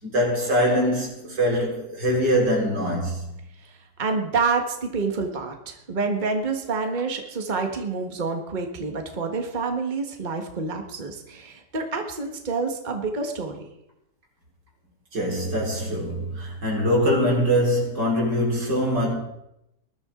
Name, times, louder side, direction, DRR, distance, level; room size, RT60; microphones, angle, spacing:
voice 1, 0.0-3.2 15.1-19.1, equal, 90° right, 5.0 m, -23 dB
voice 2, 3.6-13.6, right 4 dB, 30° right, 1.6 m, -28 dB
20.5 x 12.5 x 3.8 m
omnidirectional pair, 1.8 m